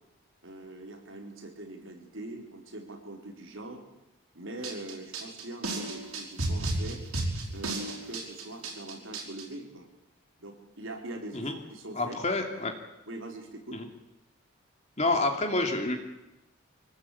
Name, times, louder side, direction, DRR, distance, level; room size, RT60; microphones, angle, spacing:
voice 1, 0.4-3.8 4.3-7.0 7.5-9.9 10.4-12.2 13.1-13.8, right 1 dB, 65° right, 2 dB, 4.4 m, -42 dB
sound 1, 4.6-9.4, right 2 dB, 90° right, 5.4 m, -33 dB
voice 2, 11.9-12.7 13.7-13.9 15.0-16.0, left 2 dB, 30° left, 4 dB, 2.6 m, -28 dB
24.0 x 19.5 x 8.6 m, 0.92 s
head